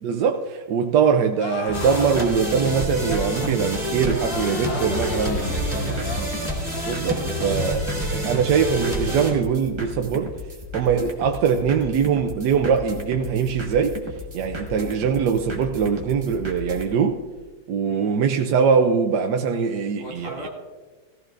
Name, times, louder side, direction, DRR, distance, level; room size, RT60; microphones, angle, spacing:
voice 1, 0.0-5.5 6.9-10.3 10.7-14.0 14.3-17.2 17.7-20.5, right 6 dB, 70° right, 1.2 m, -22 dB
sound 1, 1.4-2.3 3.0-3.5 4.0-5.6 6.0-6.3 6.7-7.1 7.5-7.8, left 6 dB, 80° left, 1.5 m, -36 dB
sound 2, 1.7-9.3, equal, ahead, 3.7 m, -27 dB
sound 3, 1.7-16.9, left 2 dB, 15° right, 1.3 m, -36 dB
voice 2, 4.6-6.1 17.8-18.2 20.0-20.5, left 1 dB, 60° left, 3.1 m, -37 dB
18.0 x 15.0 x 2.5 m
omnidirectional pair, 2.0 m